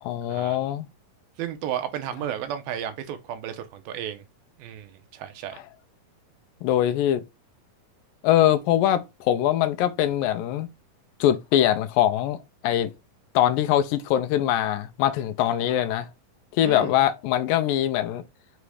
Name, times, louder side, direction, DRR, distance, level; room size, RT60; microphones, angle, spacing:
voice 1, 0.0-0.9 6.6-7.2 8.2-10.7 11.2-12.9 13.4-16.1 16.5-18.2, left 12 dB, 80° left, 2.2 m, -22 dB
voice 2, 1.4-4.2 4.6-5.6 16.6-16.9, right 10 dB, 85° right, 2.7 m, -33 dB
6.8 x 3.1 x 4.9 m
omnidirectional pair, 4.2 m